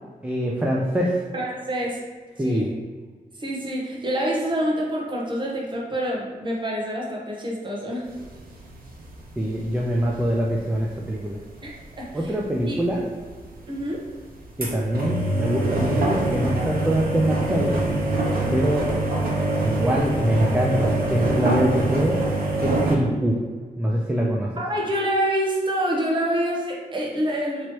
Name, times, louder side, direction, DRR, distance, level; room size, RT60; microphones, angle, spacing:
voice 1, 0.2-1.2 2.4-2.7 9.4-11.4 12.1-13.0 14.6-17.8 18.5-18.9 19.6-22.2 22.6-23.4 23.8-24.5, equal, 10° right, -3 dB, 0.4 m, -24 dB
voice 2, 1.3-2.0 2.4-2.7 3.4-8.1 11.6-11.7 12.0-12.3 12.7-12.8 13.7-14.0 24.6-27.7, equal, 30° right, -3 dB, 0.9 m, -26 dB
sound 1, 8.1-10.9 11.9-12.0 12.2-12.3 12.7-12.8 13.0-13.4 13.7-13.9 14.4-23.0, right 2 dB, 70° right, 0.8 m, -24 dB
3.0 x 2.9 x 4.5 m, 1.5 s
wide cardioid pair, 145°, 15 cm